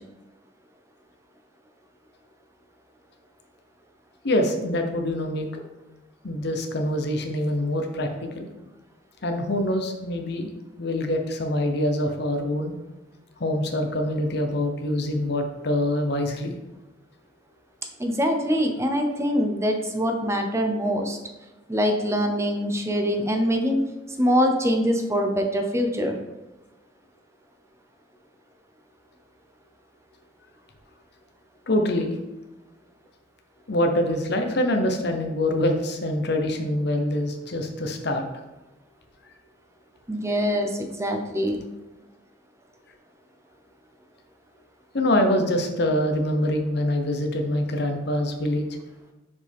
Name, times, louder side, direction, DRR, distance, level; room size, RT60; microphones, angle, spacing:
voice 1, 4.2-5.5 6.2-8.5 9.2-10.5 10.8-12.7 13.4-16.5 31.7-32.1 33.7-38.2 44.9-48.7, left 1 dB, 65° left, 4 dB, 0.9 m, -25 dB
voice 2, 18.0-21.2 21.7-23.8 24.2-26.2 40.1-41.6, equal, 15° right, 4 dB, 0.7 m, -24 dB
6.4 x 5.1 x 3.5 m, 1.0 s
head